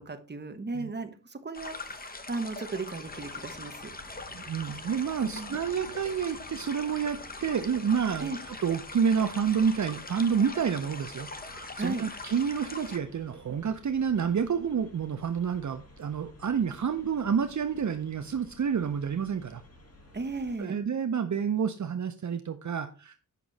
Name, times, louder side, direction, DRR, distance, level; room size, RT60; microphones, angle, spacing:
voice 1, 0.0-3.7 5.2-5.5 8.2-8.4 11.8-12.1 20.1-20.8, right 3 dB, 30° right, 8 dB, 1.1 m, -36 dB
sound 1, 1.5-13.0, left 3 dB, 25° left, 1.0 m, -42 dB
sound 2, 3.0-20.6, left 1 dB, 45° left, 2.2 m, -54 dB
voice 2, 4.3-19.6 20.6-23.2, right 7 dB, 60° right, 8 dB, 0.7 m, -29 dB
8.4 x 6.0 x 4.1 m, 0.36 s
wide cardioid pair, 80°, 33 cm